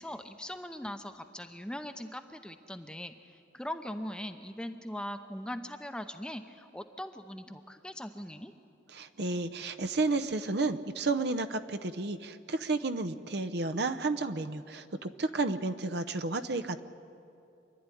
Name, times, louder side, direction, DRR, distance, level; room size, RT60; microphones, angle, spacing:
voice 1, 0.0-8.5, left 1 dB, 5° left, 7 dB, 0.7 m, -40 dB
voice 2, 8.9-16.8, right 3 dB, 60° right, 8 dB, 0.8 m, -32 dB
26.0 x 12.0 x 9.9 m, 2.7 s
head